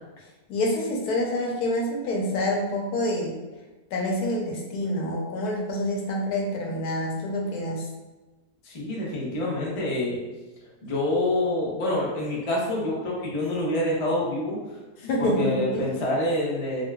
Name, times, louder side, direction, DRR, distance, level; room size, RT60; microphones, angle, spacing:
voice 1, 0.5-3.3 3.9-7.9 15.0-15.8, left 1 dB, 80° left, -1 dB, 1.2 m, -27 dB
voice 2, 8.6-10.2 10.8-14.6 15.2-16.8, left 1 dB, 60° left, -4 dB, 0.3 m, -26 dB
3.5 x 2.2 x 2.2 m, 1.2 s
omnidirectional pair, 1.7 m